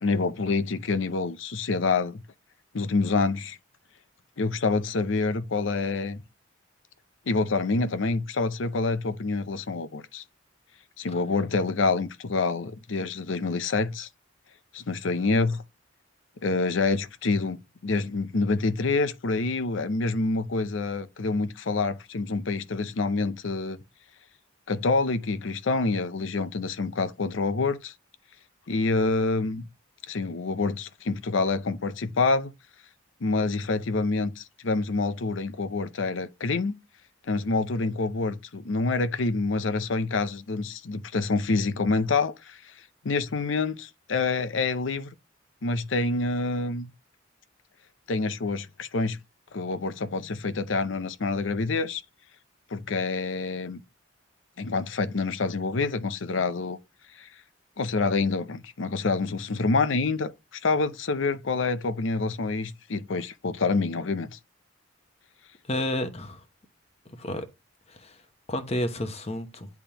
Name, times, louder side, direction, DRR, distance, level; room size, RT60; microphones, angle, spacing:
voice 1, 0.0-2.2 2.7-3.6 4.4-6.2 7.3-10.2 11.0-14.1 14.7-15.6 16.4-23.8 24.7-27.9 28.7-29.6 30.1-32.5 33.2-36.7 37.3-42.6 43.0-45.1 45.6-46.9 48.1-49.2 49.5-52.0 52.7-53.8 54.6-56.8 57.2-57.3 57.8-64.4, left 3 dB, 70° left, 0.6 m, -27 dB
voice 2, 65.7-66.4 67.2-67.5 68.0-68.1 68.5-69.7, left 1 dB, 30° left, 1.0 m, -30 dB
10.0 x 3.5 x 2.9 m
head